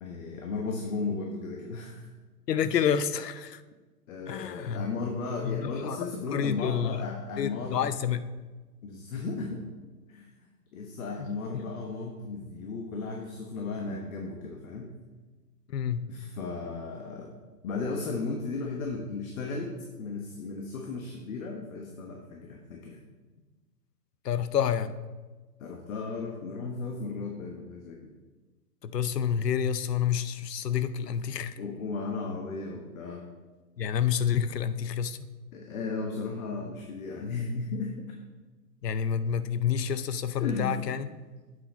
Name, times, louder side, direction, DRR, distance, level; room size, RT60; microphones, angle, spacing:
voice 1, 0.0-2.1 4.1-7.8 8.8-9.7 10.1-10.3 10.7-14.9 16.1-17.3 17.6-19.7 20.0-23.0 25.6-28.0 31.6-33.2 35.5-38.1 40.4-41.3, left 3 dB, 60° left, 1 dB, 1.2 m, -35 dB
voice 2, 2.5-3.6 4.3-4.9 5.4-7.0 7.4-8.3 11.2-11.3 11.5-11.6 15.7-16.1 24.2-24.9 28.8-31.5 33.8-35.3 38.8-41.1, left 8 dB, 90° left, 13 dB, 0.7 m, -29 dB
7.8 x 5.8 x 4.1 m, 1.3 s
hypercardioid pair, 130°, 47 cm